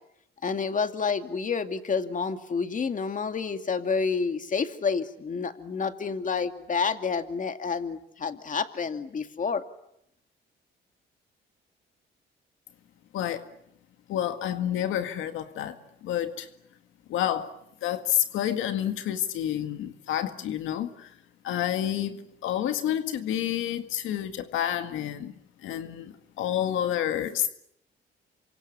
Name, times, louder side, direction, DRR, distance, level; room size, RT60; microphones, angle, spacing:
voice 1, 0.4-9.6, left 5 dB, 40° left, 8 dB, 2.4 m, -29 dB
voice 2, 13.1-13.5 14.1-16.5 17.1-17.5 17.8-21.1 21.4-25.3 25.6-27.5, left 11 dB, 90° left, 8 dB, 1.9 m, -29 dB
28.0 x 25.0 x 8.4 m, 0.76 s
cardioid pair, 90°, 20 cm